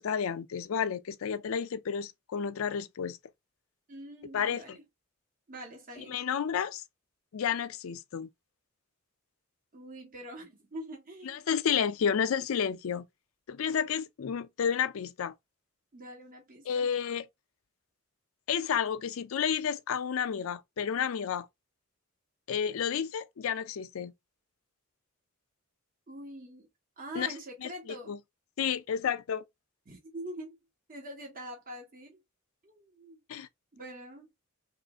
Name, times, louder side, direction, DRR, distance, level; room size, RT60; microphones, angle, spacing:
voice 1, 0.0-3.2 4.3-4.6 6.1-6.8 7.3-8.3 11.3-13.1 13.5-15.3 16.7-17.2 18.5-21.5 22.5-24.1 27.1-27.3 28.1-28.2 28.6-29.4 33.3-33.5, left 7 dB, 75° left, 0.4 m, -31 dB
voice 2, 3.9-4.8 5.5-6.2 9.7-11.7 15.9-16.9 26.1-26.7 27.0-28.1 29.9-30.6 30.9-32.2 32.6-33.2 33.7-34.3, right 1 dB, 45° right, 1.1 m, -44 dB
3.0 x 2.4 x 3.5 m
head